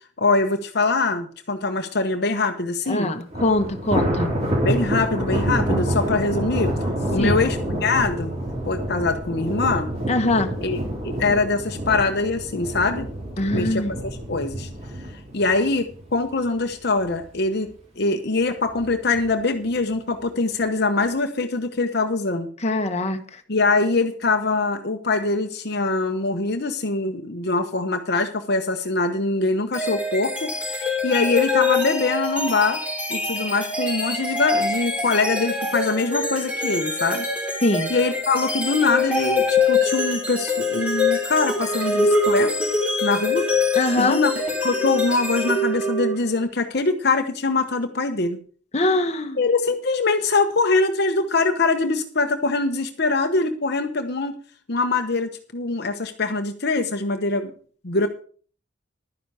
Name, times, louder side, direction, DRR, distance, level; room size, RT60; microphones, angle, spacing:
voice 1, 0.2-3.1 4.6-6.7 7.1-8.3 8.7-9.9 10.6-10.8 11.0-13.1 13.5-13.9 14.3-14.7 15.3-17.7 18.0-22.5 23.5-32.8 33.1-37.3 37.9-42.7 43.0-43.5 44.0-44.3 44.6-48.4 49.4-54.4 54.7-57.5 57.8-58.1, left 3 dB, 55° left, 6 dB, 1.0 m, -23 dB
voice 2, 2.9-4.3 7.2-7.4 10.1-10.5 13.4-13.9 22.6-23.4 37.6-37.9 43.7-44.2 48.7-49.4, left 2 dB, 35° left, 5 dB, 1.3 m, -22 dB
Thunder, 3.3-16.6 17.0-17.3 17.7-17.8 18.7-19.2, right 1 dB, 35° right, 3.8 m, -27 dB
sound 1, 29.7-46.4, left 3 dB, 5° right, 3.3 m, -24 dB
12.0 x 10.0 x 4.9 m, 0.43 s
head